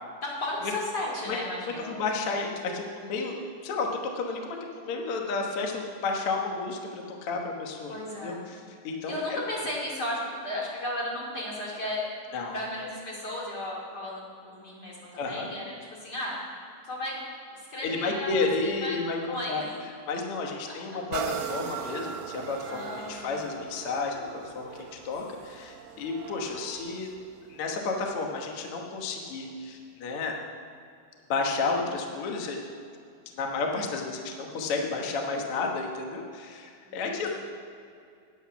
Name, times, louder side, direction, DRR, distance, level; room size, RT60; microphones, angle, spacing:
voice 1, 0.2-1.9 7.9-8.5 9.1-12.1 12.5-15.6 15.9-16.4 16.8-17.2 17.5-19.0 19.3-19.7 20.7-20.8 22.6-23.5 26.4-26.7 36.8-37.3, left 1 dB, 30° left, -4 dB, 2.4 m, -35 dB
voice 2, 1.9-3.9 4.1-8.0 8.2-8.4 8.7-9.1 12.3-12.5 15.2-15.5 17.8-19.6 20.1-27.1 27.5-30.3 31.3-32.6 33.3-37.3, left 3 dB, 75° left, 1 dB, 1.3 m, -31 dB
sound 1, 21.1-28.7 29.3-29.4, right 8 dB, 75° right, 2.2 m, -40 dB
10.5 x 8.2 x 5.8 m, 2.4 s
omnidirectional pair, 4.3 m